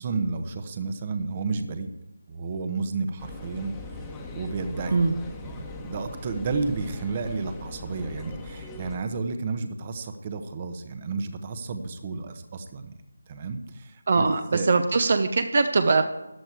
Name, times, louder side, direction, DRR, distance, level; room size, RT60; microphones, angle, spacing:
voice 1, 0.0-1.9 2.3-4.0 4.3-5.0 5.4-13.0 13.2-14.2 14.5-14.7, right 4 dB, 30° right, 8 dB, 1.1 m, -32 dB
sound 1, 3.2-9.0, left 3 dB, 10° left, 1.4 m, -40 dB
voice 2, 14.1-16.0, right 4 dB, 45° right, 8 dB, 0.9 m, -21 dB
14.0 x 10.5 x 4.7 m, 0.97 s
figure-of-eight pair, 160°, 0 cm